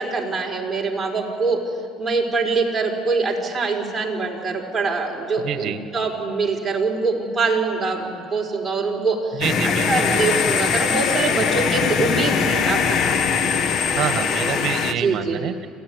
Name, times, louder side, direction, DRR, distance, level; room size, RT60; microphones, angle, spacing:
voice 1, 0.0-1.6 2.0-13.3 14.9-15.4, right 4 dB, 15° right, -2 dB, 4.8 m, -24 dB
voice 2, 5.4-5.8 9.3-10.4 14.0-15.7, right 9 dB, 50° right, 9 dB, 1.7 m, -27 dB
sound 1, 9.4-14.9, left 6 dB, 50° left, 1.3 m, -21 dB
27.0 x 16.0 x 9.7 m, 2.3 s
cardioid pair, 110°, 0 cm